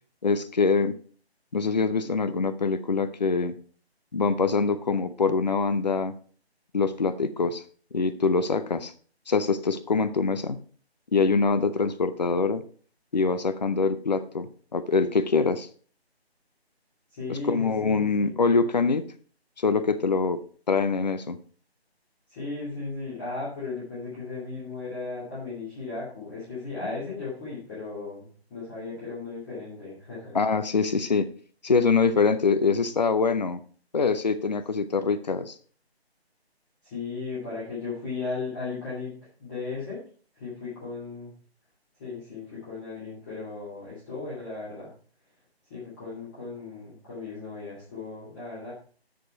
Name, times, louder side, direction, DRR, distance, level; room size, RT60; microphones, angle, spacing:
voice 1, 0.2-0.9 1.5-3.5 4.1-6.1 6.7-7.6 7.9-8.9 9.3-10.6 11.1-12.6 13.1-15.7 17.3-19.1 19.6-20.4 20.7-21.4 30.3-31.3 31.6-33.6 33.9-35.5, left 4 dB, 40° left, 12 dB, 0.7 m, -24 dB
voice 2, 17.1-18.4 22.3-30.4 36.8-39.1 39.4-40.0 40.3-41.3 42.0-44.9 45.7-48.7, left 3 dB, 20° left, -9 dB, 2.4 m, -36 dB
7.8 x 6.7 x 4.5 m, 0.43 s
figure-of-eight pair, 160°, 32 cm